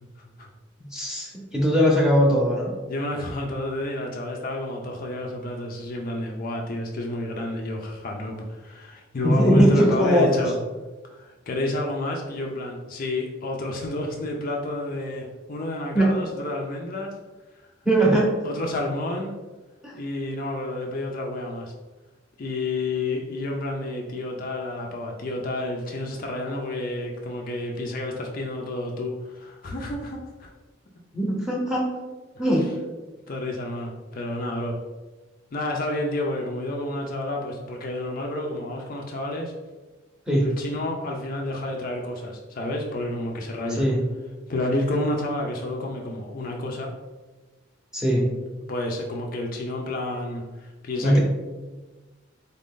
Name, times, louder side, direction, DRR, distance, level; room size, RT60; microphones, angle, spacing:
voice 1, 0.8-2.7 9.2-10.3 15.9-16.1 17.8-18.2 19.8-19.9 31.1-31.9 32.4-32.6 40.3-40.4 43.7-44.0 47.9-48.2 51.0-51.2, equal, 5° right, -3 dB, 0.8 m, -20 dB
voice 2, 2.9-10.6 11.0-17.1 18.4-19.3 19.9-21.7 22.4-30.5 33.3-34.8 35.5-39.5 40.4-43.8 44.5-46.9 48.7-51.2, left 1 dB, 45° left, 1 dB, 0.5 m, -30 dB
4.0 x 2.6 x 3.6 m, 1.2 s
head